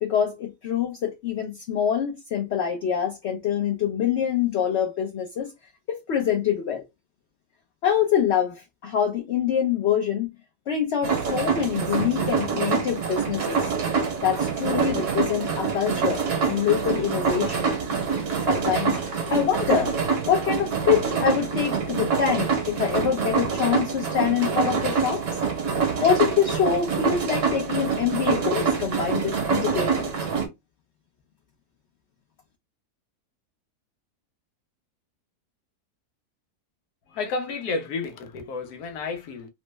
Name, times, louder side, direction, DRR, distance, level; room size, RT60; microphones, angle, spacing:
voice 1, 0.0-5.5 5.9-6.8 7.8-10.3 10.7-13.7 14.2-17.8 18.5-19.0 19.3-19.9 20.3-25.4 26.0-30.1, left 9 dB, 60° left, 0.7 m, -25 dB
sound 1, 11.0-30.5, right 6 dB, 60° right, 1.1 m, -26 dB
voice 2, 37.1-39.5, left 4 dB, 80° left, 1.2 m, -31 dB
3.1 x 2.0 x 3.2 m
omnidirectional pair, 1.7 m